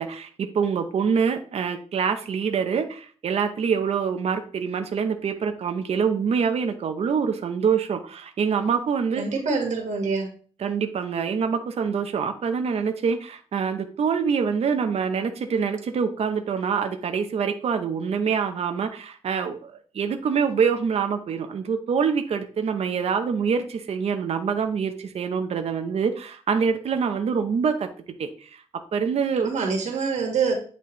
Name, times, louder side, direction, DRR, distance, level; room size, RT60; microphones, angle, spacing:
voice 1, 0.0-9.2 10.6-27.9 28.2-28.6 28.9-29.5, right 6 dB, 60° right, 6 dB, 0.7 m, -25 dB
voice 2, 9.1-10.3 29.4-30.5, right 5 dB, 85° right, 1 dB, 1.7 m, -25 dB
8.5 x 4.2 x 3.1 m, 0.43 s
wide cardioid pair, 150°, 12 cm